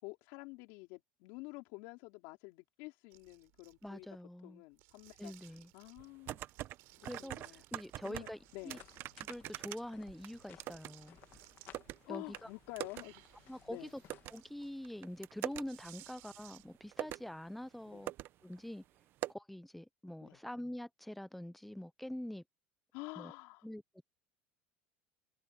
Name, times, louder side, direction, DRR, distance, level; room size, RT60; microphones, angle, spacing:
voice 1, 0.0-4.1 4.4-5.3 5.7-6.4 7.0-7.6 8.0-8.8 12.1-13.2 13.7-13.9 17.9-18.1 20.2-20.4 22.9-23.7, left 25 dB, 75° left, 4.5 m, -49 dB
sound 1, 3.1-4.1 4.7-6.1 6.5-8.1 8.4-12.0 12.4-16.9, right 24 dB, 75° right, 3.6 m, -61 dB
voice 2, 3.8-4.6 5.2-5.7 7.0-8.4 8.6-8.8 9.2-11.2 12.1-12.5 13.5-14.0 14.3-18.1 18.4-18.8 19.3-22.4 23.2-23.3 23.6-23.8, left 1 dB, 5° left, 0.5 m, -45 dB
sound 2, 6.0-6.8 7.0-8.3 8.7-10.9 11.2-12.0 12.3-12.4 12.8-13.0 13.3-13.4 14.1-14.3 14.8-15.6 16.5-16.6 16.9-17.3 17.7-17.8 18.1-18.3 18.5-18.6 19.2-19.3, right 14 dB, 55° right, 0.8 m, -42 dB
sound 3, 8.1-14.4, left 13 dB, 50° left, 1.7 m, -61 dB
supercardioid pair, 115°, 5 cm